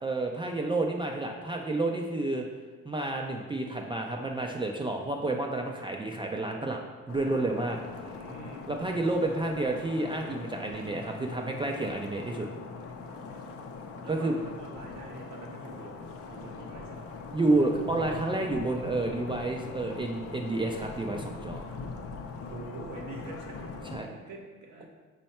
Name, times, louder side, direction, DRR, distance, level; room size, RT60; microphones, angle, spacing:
voice 1, 0.0-2.4 2.9-6.8 7.1-7.8 8.7-12.5 14.1-14.4 17.3-21.7 23.9-24.1, right 2 dB, 15° right, 1 dB, 0.3 m, -30 dB
sound 1, 7.1-24.0, left 4 dB, 50° left, 0.5 m, -41 dB
voice 2, 7.7-8.7 13.3-13.6 13.8-17.2 22.4-24.9, right 2 dB, 70° right, -2 dB, 0.7 m, -46 dB
5.4 x 2.2 x 4.2 m, 1.4 s
cardioid pair, 90°, 30 cm